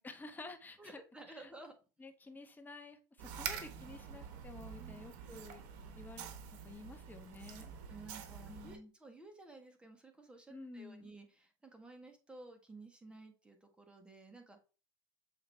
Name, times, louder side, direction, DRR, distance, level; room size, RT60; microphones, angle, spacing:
voice 1, 0.0-1.0 1.3-1.5 2.0-5.6 6.0-7.7 8.5-8.9 10.5-11.1, left 3 dB, 20° left, 6 dB, 1.2 m, -51 dB
voice 2, 0.8-1.7 4.8-5.0 7.9-14.6, right 2 dB, 10° right, 4 dB, 1.6 m, -54 dB
sound 1, 3.2-8.8, right 7 dB, 65° right, 1.1 m, -46 dB
7.4 x 3.8 x 3.3 m, 0.34 s
hypercardioid pair, 90°, 10 cm